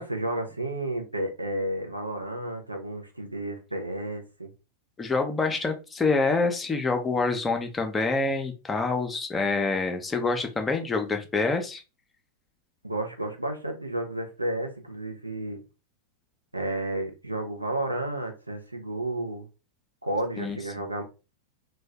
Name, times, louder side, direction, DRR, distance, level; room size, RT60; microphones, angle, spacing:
voice 1, 0.0-4.5 12.8-15.6 16.5-19.5 20.0-21.0, right 1 dB, 85° right, 0.5 m, -32 dB
voice 2, 5.0-11.8 20.4-20.6, left 3 dB, 15° left, 0.5 m, -26 dB
2.6 x 2.2 x 3.2 m
figure-of-eight pair, 90°, 0 cm